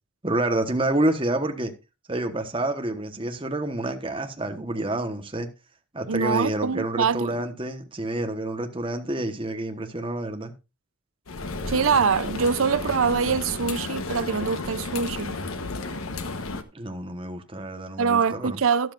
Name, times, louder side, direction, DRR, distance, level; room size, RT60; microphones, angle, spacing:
voice 1, 0.2-1.7 2.1-5.5 5.9-10.5 16.7-18.6, right 1 dB, 25° right, 1.2 m, -28 dB
voice 2, 6.1-7.4 11.7-15.4 18.0-18.9, right 6 dB, 80° right, 0.6 m, -24 dB
sound 1, 11.3-16.6, left 3 dB, 90° left, 1.1 m, -32 dB
12.5 x 11.5 x 2.5 m
head